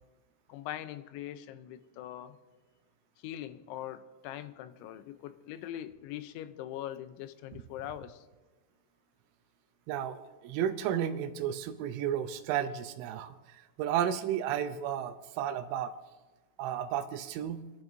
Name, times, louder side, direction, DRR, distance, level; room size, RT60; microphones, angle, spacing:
voice 1, 0.5-2.4 3.2-8.2, left 12 dB, 85° left, 11 dB, 3.1 m, -42 dB
voice 2, 9.9-15.9 16.6-17.6, right 10 dB, 90° right, 7 dB, 3.0 m, -33 dB
29.5 x 10.5 x 2.6 m, 1.3 s
omnidirectional pair, 5.3 m